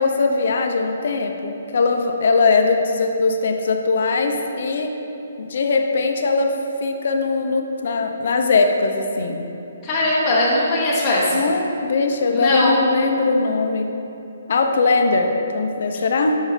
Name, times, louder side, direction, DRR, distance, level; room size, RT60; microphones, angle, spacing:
voice 1, 0.0-4.9 5.4-9.4 11.3-13.9 14.5-16.4, left 3 dB, 50° left, 4 dB, 0.6 m, -20 dB
voice 2, 9.8-11.4 12.3-12.8, left 1 dB, 15° left, -8 dB, 1.0 m, -19 dB
6.2 x 5.6 x 5.0 m, 2.8 s
hypercardioid pair, 170°, 0 cm